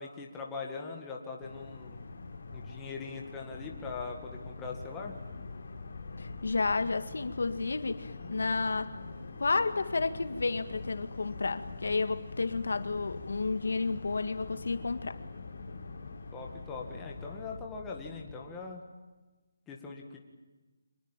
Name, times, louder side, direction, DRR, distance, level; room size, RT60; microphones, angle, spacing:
voice 1, 0.0-2.0 2.5-5.2 16.3-18.8 19.7-20.2, left 4 dB, 5° left, 2.0 m, -41 dB
sound 1, 1.4-17.6, left 3 dB, 55° left, 4.3 m, -46 dB
sound 2, 3.5-18.5, left 4 dB, 35° left, 2.1 m, -48 dB
voice 2, 6.2-9.0 9.4-15.2, left 3 dB, 70° left, 1.9 m, -31 dB
26.0 x 21.5 x 9.1 m
hypercardioid pair, 180°, 0 cm